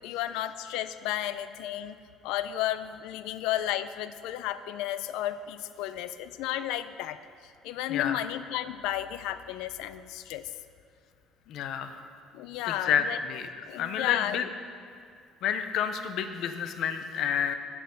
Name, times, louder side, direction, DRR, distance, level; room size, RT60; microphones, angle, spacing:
voice 1, 0.0-2.0 2.2-7.2 7.6-10.4 12.3-13.2 13.7-14.4, left 12 dB, 90° left, 13 dB, 0.5 m, -33 dB
voice 2, 11.5-12.0 12.7-13.5 13.8-14.5 15.4-17.5, left 8 dB, 50° left, 8 dB, 0.7 m, -29 dB
10.0 x 7.6 x 6.9 m, 2.3 s
cardioid pair, 180°, 0 cm